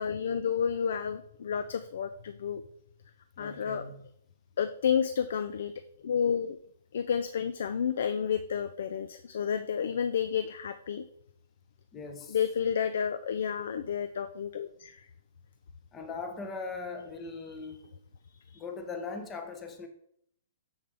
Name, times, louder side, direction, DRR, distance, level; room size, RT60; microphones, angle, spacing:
voice 1, 0.0-2.6 3.4-3.8 4.6-5.7 6.0-6.6 6.9-11.0 12.3-15.1 18.5-18.6, left 7 dB, 70° left, 11 dB, 0.5 m, -30 dB
voice 2, 3.4-4.0 11.9-12.4 15.9-17.9 18.5-19.9, left 4 dB, 20° left, 6 dB, 0.9 m, -40 dB
7.2 x 6.6 x 3.4 m, 0.68 s
hypercardioid pair, 150°, 0 cm